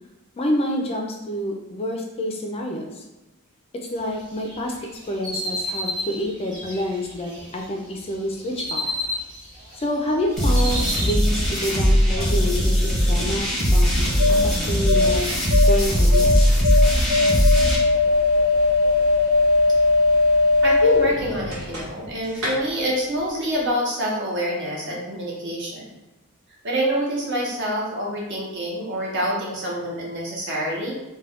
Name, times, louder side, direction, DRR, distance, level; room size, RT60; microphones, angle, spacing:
voice 1, 0.4-3.0 3.7-4.7 5.1-8.8 9.7-14.0 14.4-15.3 15.7-16.5, equal, 25° left, 1 dB, 0.3 m, -28 dB
sound 1, 4.4-7.6 8.1-9.8 10.1-11.1, left 1 dB, 20° right, 1.0 m, -31 dB
sound 2, 10.4-17.8, equal, ahead, 0.7 m, -19 dB
sound 3, 13.9-22.1 22.3-22.5, left 3 dB, 85° right, 1.1 m, -20 dB
voice 2, 20.6-25.8 26.6-31.0, equal, 55° right, -3 dB, 0.8 m, -26 dB
2.3 x 2.2 x 3.4 m, 1.0 s
head